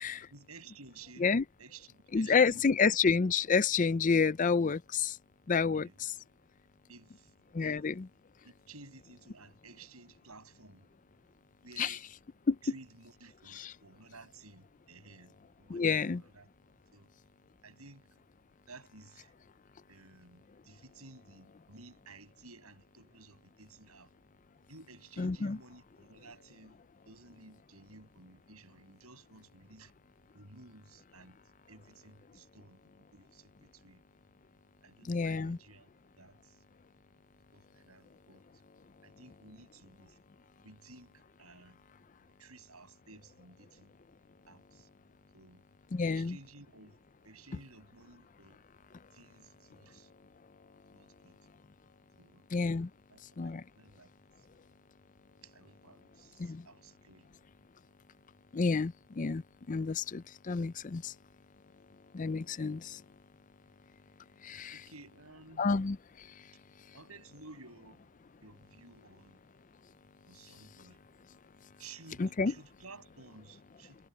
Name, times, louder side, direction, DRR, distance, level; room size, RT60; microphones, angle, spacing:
voice 1, 0.3-1.3 1.6-2.9 5.6-6.1 6.9-7.9 8.7-10.9 11.6-12.1 12.6-16.5 16.9-17.1 17.6-18.2 18.7-19.3 19.9-24.1 24.7-26.8 27.1-29.9 30.3-31.4 31.7-34.0 34.8-35.9 36.2-36.6 37.5-38.4 39.0-40.2 40.6-41.8 42.2-43.9 44.5-44.9 45.3-45.6 46.0-47.0 47.2-48.6 49.1-50.1 50.9-51.4 52.2-52.4 53.1-54.1 54.4-54.6 55.4-57.3 64.7-65.7 66.9-68.1 68.4-69.4 70.3-71.0 71.8-74.0, right 3 dB, 85° right, 7.3 m, -55 dB
voice 2, 2.1-5.1 5.5-6.1 7.5-8.1 11.8-11.9 12.5-12.6 13.6-13.7 15.7-16.2 25.2-25.6 35.1-35.6 45.9-46.4 52.5-52.9 53.4-53.6 56.4-56.6 58.5-59.4 59.7-61.1 62.1-63.0 64.4-64.7 65.6-66.0 72.2-72.5, left 5 dB, 35° left, 0.4 m, -29 dB
head